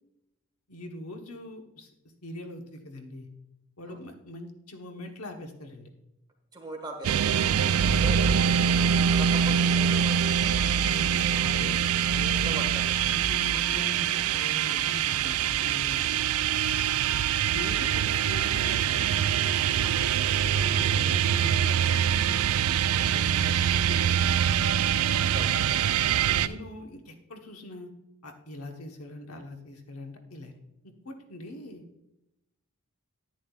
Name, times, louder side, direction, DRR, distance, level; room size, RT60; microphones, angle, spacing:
voice 1, 0.7-1.9 2.2-3.3 3.8-5.9 10.8-11.7 12.1-12.6 13.1-16.3 17.4-19.2 20.6-22.4 23.1-24.7 26.3-27.9 28.2-30.5 30.8-31.8, left 1 dB, 75° left, 4 dB, 1.2 m, -42 dB
voice 2, 6.5-8.4 8.7-10.6 11.3-11.8 12.4-12.9 13.5-13.7 17.0-17.2 19.8-20.7 22.9-23.1 25.2-25.9, right 1 dB, 20° right, 1 dB, 1.5 m, -42 dB
sound 1, 7.0-26.5, right 8 dB, 70° right, 0.3 m, -24 dB
10.5 x 9.8 x 2.4 m, 0.88 s
head